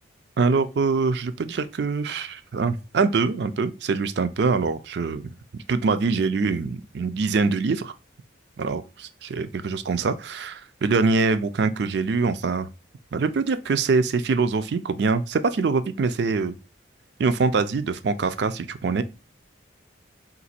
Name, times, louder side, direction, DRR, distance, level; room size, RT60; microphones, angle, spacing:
voice 1, 0.4-7.9 8.6-12.7 13.1-16.6 17.2-19.0, right 4 dB, 60° right, 0.4 m, -24 dB
4.0 x 2.6 x 4.2 m
head